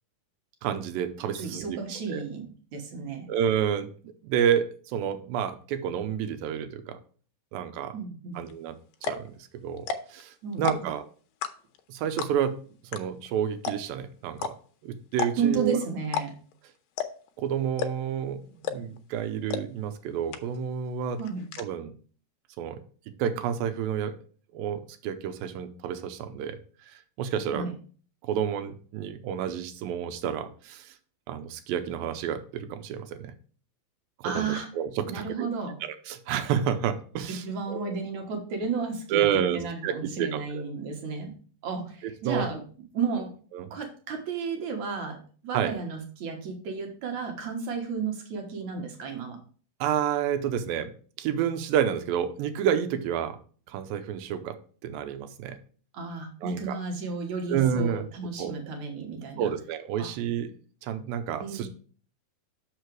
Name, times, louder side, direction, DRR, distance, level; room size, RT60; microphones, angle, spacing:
voice 1, 0.6-1.8 2.1-2.2 3.3-7.0 7.5-8.0 8.4-8.8 9.0-9.3 9.6-11.1 11.9-12.6 12.9-14.5 14.8-15.8 17.4-21.2 21.6-21.9 22.6-22.8 23.2-24.2 24.5-26.6 27.2-27.7 28.2-30.9 31.3-33.3 34.3-35.5 36.1-38.0 39.1-40.6 42.2-42.5 43.5-43.7 45.5-45.7 49.8-50.9 51.2-53.4 53.7-54.6 54.8-55.6 56.4-56.8 57.5-58.1 58.4-58.5 59.4-60.5 60.8-61.7, right 8 dB, 85° right, 9 dB, 2.5 m, -29 dB
voice 2, 1.4-2.4 2.7-3.3 7.9-8.4 10.4-10.9 15.4-16.3 21.2-21.5 27.5-27.7 34.2-34.7 35.1-35.8 37.3-41.3 41.6-42.6 42.9-43.3 43.7-45.2 45.4-49.4 55.9-59.5 60.0-60.1 61.4-61.7, right 5 dB, 60° right, 3 dB, 2.3 m, -32 dB
sound 1, 8.5-8.6 8.9-9.3 9.8-10.2 10.5-11.0 11.4-11.8 12.2-12.5 12.9-13.0 13.3-13.4 13.6-14.0 14.4-14.5 15.1-15.6 16.1-16.3 16.5-16.6 17.0-17.3 17.8-18.2 18.7-19.0 19.5-19.6 19.9-20.0 20.3-20.8 21.0-21.6, left 8 dB, 85° left, 2.5 m, -31 dB
6.5 x 5.9 x 4.6 m, 0.42 s
omnidirectional pair, 4.1 m